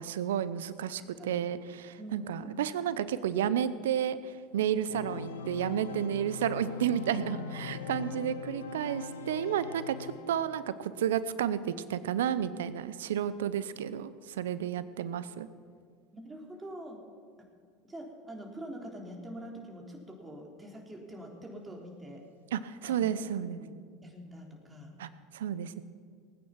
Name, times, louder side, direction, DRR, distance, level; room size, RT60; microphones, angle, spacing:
voice 1, 0.0-15.5 22.5-23.6 25.0-25.8, right 9 dB, 80° right, 15 dB, 0.7 m, -32 dB
voice 2, 1.0-1.4 2.0-2.6 16.1-17.0 17.8-22.2 22.8-23.7 24.0-24.9, equal, 15° right, 0 dB, 3.4 m, -45 dB
Organ, 4.9-10.6, left 5 dB, 90° left, 1.3 m, -41 dB
19.5 x 9.5 x 5.8 m, 2.1 s
hypercardioid pair, 80°, 0 cm